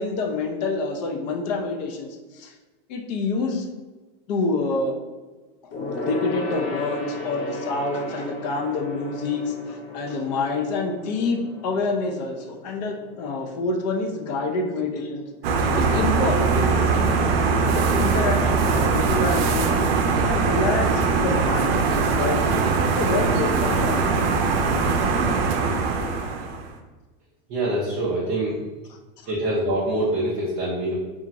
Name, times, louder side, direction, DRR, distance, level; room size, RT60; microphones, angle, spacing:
voice 1, 0.0-2.5 2.9-3.7 4.3-4.9 5.6-15.2 15.8-17.2 17.6-19.8 20.2-21.8 22.1-22.6 23.0-24.2 29.2-29.3, left 3 dB, 50° left, 2 dB, 0.4 m, -27 dB
Gong, 5.7-15.5 15.8-16.0 16.3-16.4, left 2 dB, 85° left, 0.8 m, -35 dB
sound 1, 15.4-26.7, right 4 dB, 85° right, 0.5 m, -21 dB
voice 2, 27.5-28.6 29.3-30.9, right 1 dB, 25° right, -5 dB, 0.3 m, -25 dB
2.8 x 2.4 x 2.5 m, 1.2 s
supercardioid pair, 160°, 29 cm